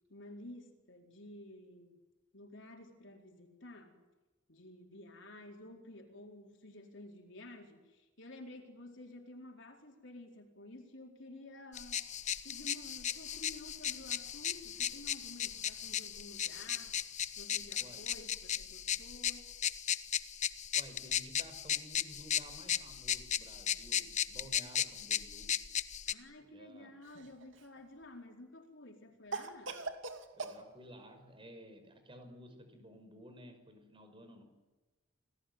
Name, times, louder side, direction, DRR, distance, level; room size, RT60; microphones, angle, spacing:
voice 1, 0.1-2.0 2.3-4.0 4.5-12.1 12.4-17.0 17.4-19.5 26.1-29.8, left 1 dB, 70° left, 3 dB, 4.5 m, -52 dB
sound 1, 11.7-26.1, left 9 dB, 40° left, 1.0 m, -36 dB
voice 2, 20.7-25.5 26.5-26.9 30.3-34.5, equal, 25° right, 7 dB, 5.6 m, -54 dB
Cough, 27.0-27.8 29.3-30.6, right 4 dB, 70° right, 2.8 m, -41 dB
28.5 x 19.5 x 9.6 m, 1.2 s
head